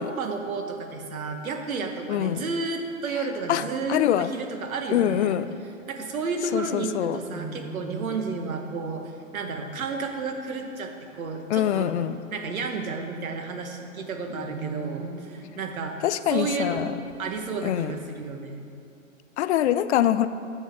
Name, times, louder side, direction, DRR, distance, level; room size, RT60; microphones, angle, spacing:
voice 1, 0.0-5.4 5.9-11.9 12.3-16.0 16.3-18.7, right 4 dB, 80° right, 5 dB, 1.2 m, -32 dB
voice 2, 2.1-2.5 3.5-3.6 3.9-4.3 4.9-5.5 6.5-7.2 11.5-12.2 16.0-16.9 17.6-18.0 19.4-20.3, left 11 dB, 55° left, 14 dB, 0.4 m, -24 dB
sound 1, 4.6-18.0, right 4 dB, 25° right, 1.3 m, -44 dB
8.3 x 5.5 x 6.5 m, 2.6 s
hypercardioid pair, 135°, 41 cm